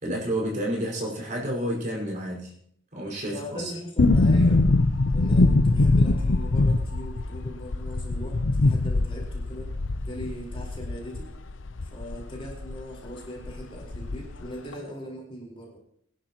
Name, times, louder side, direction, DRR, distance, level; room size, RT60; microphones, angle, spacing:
voice 1, 0.0-2.5 2.9-3.7, right 1 dB, 40° right, -2 dB, 5.2 m, -30 dB
voice 2, 3.3-4.7 5.1-9.7 10.0-11.3 11.9-15.8, equal, 30° left, -2 dB, 4.5 m, -40 dB
sound 1, 4.0-12.8 13.1-13.2 13.4-14.5 14.7-14.8, left 2 dB, 65° left, 0.7 m, -23 dB
23.0 x 11.5 x 3.0 m, 0.67 s
head